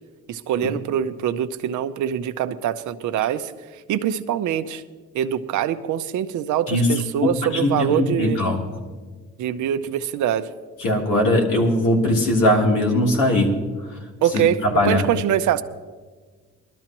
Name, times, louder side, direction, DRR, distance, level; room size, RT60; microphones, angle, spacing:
voice 1, 0.3-4.8 5.1-8.4 9.4-10.5 14.2-15.6, right 10 dB, 75° right, 8 dB, 0.7 m, -24 dB
voice 2, 7.2-8.6 10.8-13.5 14.6-15.0, left 1 dB, 85° left, -1 dB, 3.1 m, -20 dB
21.5 x 12.5 x 3.0 m, 1.4 s
cardioid pair, 90°, 30 cm